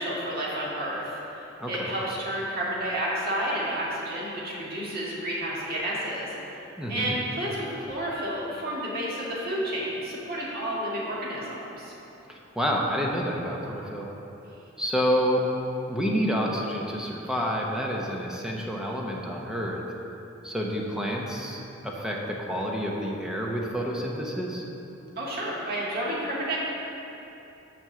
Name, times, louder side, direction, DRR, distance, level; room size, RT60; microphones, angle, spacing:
voice 1, 0.0-6.4 6.9-11.9 25.2-26.6, right 1 dB, 50° right, -6 dB, 1.8 m, -31 dB
voice 2, 1.6-1.9 6.8-7.1 12.3-14.1 14.8-15.4 15.9-19.8 20.4-24.6, equal, 5° right, -2 dB, 0.8 m, -29 dB
6.2 x 5.3 x 6.9 m, 3.0 s
head